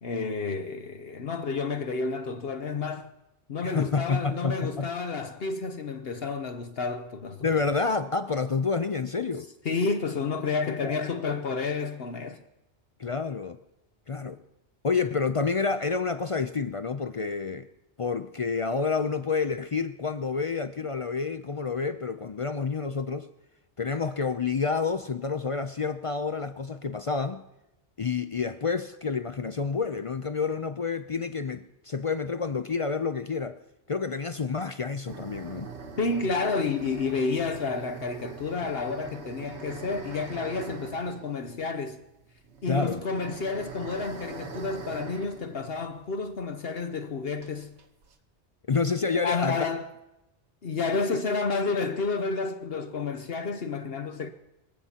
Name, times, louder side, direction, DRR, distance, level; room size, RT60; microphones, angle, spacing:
voice 1, 0.0-3.1 3.5-7.5 9.6-12.4 36.0-42.0 42.6-47.8 49.2-49.9 50.6-54.3, left 4 dB, 60° left, 1.0 m, -30 dB
voice 2, 3.6-4.9 7.4-9.5 10.8-10.9 13.0-13.6 14.1-14.4 14.8-17.7 18.0-23.3 23.8-27.4 28.0-33.6 33.9-35.7 42.7-43.0 48.7-49.6, left 5 dB, 45° left, 0.4 m, -29 dB
sound 1, 35.1-46.5 46.8-46.9 47.4-48.2, right 5 dB, 80° right, 1.5 m, -43 dB
25.5 x 15.5 x 2.9 m
omnidirectional pair, 1.2 m